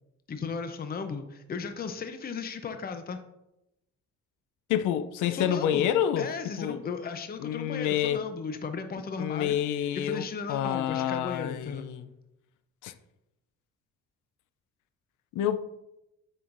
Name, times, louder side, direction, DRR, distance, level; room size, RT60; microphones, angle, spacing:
voice 1, 0.3-3.2 5.3-9.6 9.9-11.9, left 5 dB, 30° left, 0.6 m, -36 dB
voice 2, 4.7-6.3 6.6-6.8 7.4-8.2 9.2-12.1 12.8-12.9 15.3-15.7, left 10 dB, 80° left, 0.5 m, -28 dB
8.3 x 5.7 x 2.6 m
cardioid pair, 90°, 30 cm